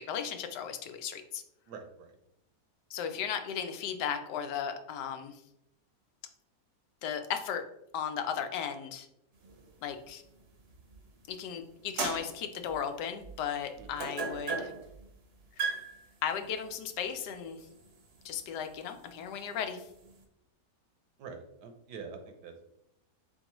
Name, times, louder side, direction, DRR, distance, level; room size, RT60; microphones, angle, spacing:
voice 1, 0.0-1.4 2.9-5.4 7.0-7.6 7.9-9.1 9.8-10.2 11.3-14.7 15.6-15.7 16.2-17.6 18.2-19.8, left 8 dB, 85° left, 7 dB, 1.2 m, -36 dB
voice 2, 1.7-2.1 13.8-14.1 21.2-22.6, right 5 dB, 80° right, 5 dB, 1.3 m, -46 dB
sound 1, 9.4-11.3 11.7-20.2, right 4 dB, 55° right, 0.7 m, -40 dB
4.5 x 3.7 x 3.0 m, 0.81 s
omnidirectional pair, 1.8 m